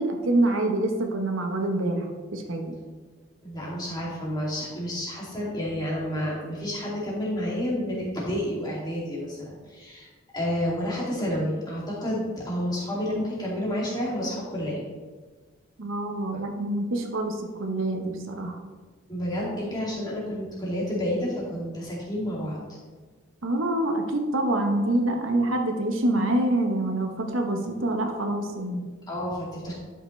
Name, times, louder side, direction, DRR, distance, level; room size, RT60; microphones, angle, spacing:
voice 1, 0.0-2.8 15.8-18.6 23.4-28.9, right 1 dB, 80° right, 3 dB, 1.0 m, -26 dB
voice 2, 3.4-10.1 10.3-14.8 16.3-16.4 19.1-22.6 29.1-29.7, equal, 20° left, -6 dB, 2.4 m, -30 dB
11.5 x 5.8 x 3.2 m, 1.4 s
head